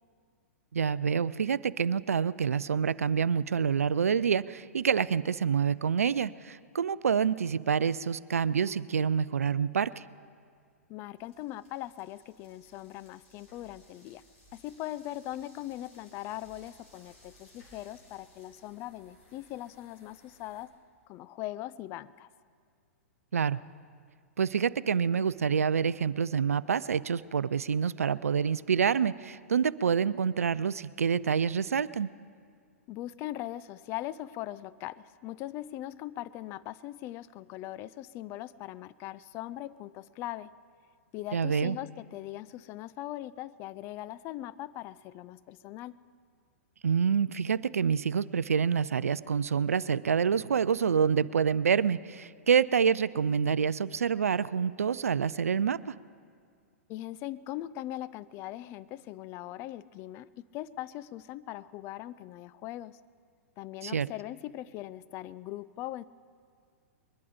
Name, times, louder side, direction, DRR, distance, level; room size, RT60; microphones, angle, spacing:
voice 1, 0.7-10.0 23.3-23.6 24.4-32.1 41.3-41.8 46.8-55.9 63.8-64.1, right 7 dB, 75° right, 19 dB, 0.4 m, -27 dB
voice 2, 10.9-14.2 14.5-20.7 21.1-22.3 32.9-40.5 41.1-46.0 56.9-63.0 63.6-66.0, left 14 dB, 30° left, 17 dB, 0.3 m, -40 dB
sound 1, 11.1-20.6, left 1 dB, 60° left, 4.6 m, -61 dB
21.5 x 11.5 x 5.0 m, 2.1 s
figure-of-eight pair, 110°, 8 cm